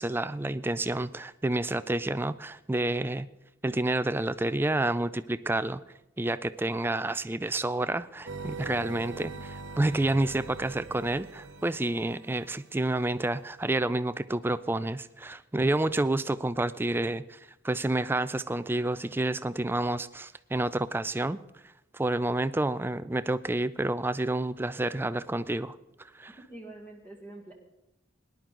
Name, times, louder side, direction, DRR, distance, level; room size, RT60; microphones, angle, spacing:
voice 1, 0.0-3.3 3.6-5.8 6.2-17.4 17.6-21.4 21.9-25.8 26.1-26.4, right 2 dB, 10° right, 14 dB, 0.4 m, -29 dB
sound 1, 8.3-12.5, right 4 dB, 75° right, 1.3 m, -42 dB
voice 2, 26.4-27.5, right 1 dB, 10° left, 1 dB, 1.6 m, -46 dB
18.5 x 11.0 x 3.8 m, 0.94 s
head